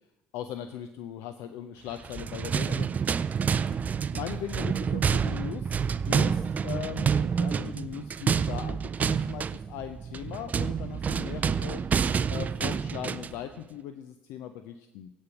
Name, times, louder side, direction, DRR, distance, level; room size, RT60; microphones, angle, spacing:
voice 1, 0.3-3.1 4.1-11.8 12.3-15.1, left 10 dB, 65° left, 9 dB, 0.6 m, -39 dB
sound 1, 2.0-13.4, right 6 dB, 35° right, 0.4 m, -28 dB
16.0 x 5.4 x 5.8 m, 0.97 s
hypercardioid pair, 60°, 5 cm